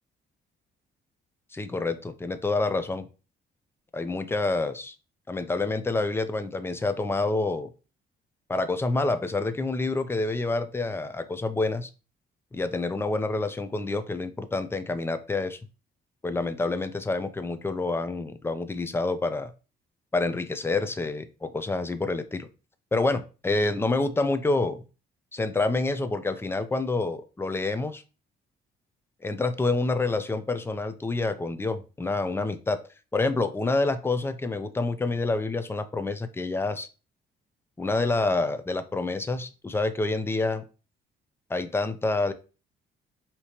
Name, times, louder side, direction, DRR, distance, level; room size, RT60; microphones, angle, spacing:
voice 1, 1.5-3.1 3.9-5.0 5.3-7.7 8.5-11.9 12.5-15.6 16.2-19.5 20.1-22.5 22.9-24.8 25.3-28.0 29.2-32.8 33.1-36.9 37.8-40.6 41.5-42.3, left 3 dB, 10° left, 11 dB, 0.5 m, -27 dB
4.9 x 2.9 x 2.9 m, 0.33 s
cardioid pair, 90°, 20 cm